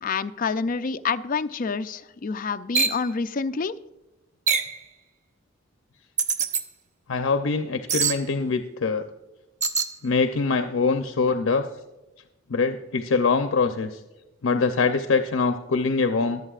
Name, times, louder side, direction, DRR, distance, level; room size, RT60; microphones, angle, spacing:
voice 1, 0.0-3.8, left 5 dB, 45° left, 10 dB, 0.5 m, -28 dB
sound 1, 2.7-3.0 4.5-4.8 6.2-6.6 7.9-8.2 9.6-9.9, right 5 dB, 35° right, 0.7 m, -23 dB
voice 2, 7.1-9.0 10.0-11.7 12.5-14.0 14.4-16.4, left 4 dB, 80° left, 7 dB, 0.7 m, -23 dB
22.5 x 8.1 x 2.4 m, 1.0 s
head